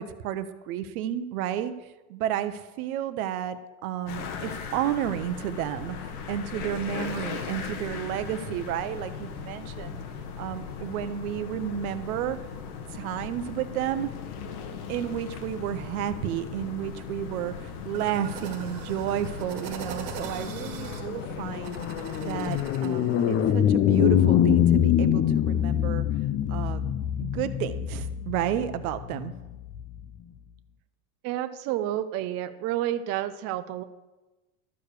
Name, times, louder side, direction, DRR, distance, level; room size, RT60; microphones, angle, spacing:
voice 1, 0.0-1.7 2.1-6.0 6.3-10.0 10.4-12.4 12.9-14.1 14.9-21.8 22.2-26.1 26.5-26.8 27.2-29.3, right 11 dB, 75° right, 11 dB, 0.9 m, -31 dB
sound 1, 4.1-22.6, left 6 dB, 85° left, 1.3 m, -38 dB
sound 2, 17.9-23.5, right 7 dB, 60° right, 1.6 m, -42 dB
sound 3, 20.5-30.0, left 10 dB, 25° left, 0.4 m, -25 dB
voice 2, 31.2-33.8, right 12 dB, 35° right, 10 dB, 0.4 m, -30 dB
12.5 x 4.8 x 6.5 m, 1.1 s
supercardioid pair, 130°, 44 cm